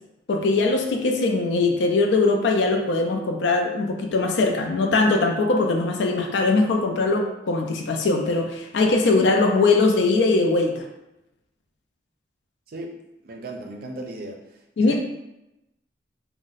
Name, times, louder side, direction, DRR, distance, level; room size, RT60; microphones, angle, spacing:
voice 1, 0.3-10.8 14.8-15.0, left 3 dB, 70° left, 2 dB, 0.4 m, -21 dB
voice 2, 13.2-15.0, right 1 dB, 55° right, 2 dB, 0.5 m, -37 dB
2.5 x 2.1 x 3.9 m, 0.92 s
head